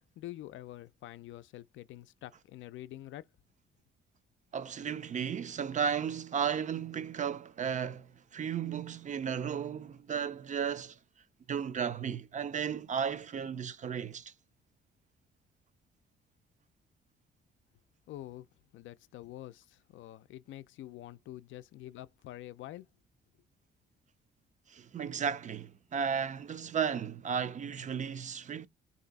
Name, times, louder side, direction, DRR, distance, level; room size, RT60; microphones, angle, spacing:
voice 1, 0.2-3.3 18.1-18.5 18.7-22.9, left 14 dB, 80° left, 0.4 m, -46 dB
voice 2, 4.5-11.0 11.5-14.3 24.7-28.7, right 7 dB, 40° right, 0.4 m, -34 dB
3.3 x 2.7 x 3.9 m
cardioid pair, 90°, 20 cm